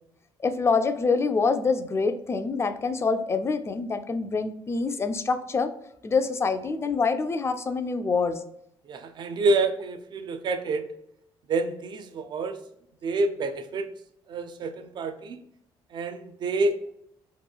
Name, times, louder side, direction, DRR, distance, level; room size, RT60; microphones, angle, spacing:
voice 1, 0.4-5.7 6.0-8.4, left 4 dB, 25° left, 8 dB, 0.3 m, -26 dB
voice 2, 8.9-10.8 11.5-12.6 13.0-13.9 14.3-15.4 15.9-16.9, right 2 dB, 50° right, 9 dB, 0.4 m, -28 dB
2.9 x 2.3 x 2.2 m, 0.75 s
supercardioid pair, 75°, 10 cm